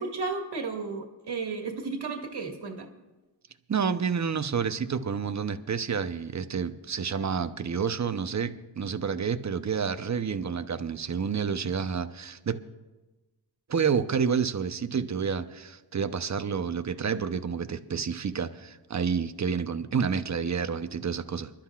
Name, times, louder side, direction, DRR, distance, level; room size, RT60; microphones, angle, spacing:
voice 1, 0.0-2.9, right 4 dB, 65° right, 3 dB, 2.0 m, -33 dB
voice 2, 3.7-12.6 13.7-21.5, right 6 dB, 40° right, 10 dB, 0.9 m, -29 dB
26.0 x 12.0 x 2.5 m, 1.1 s
cardioid pair, 55°, 43 cm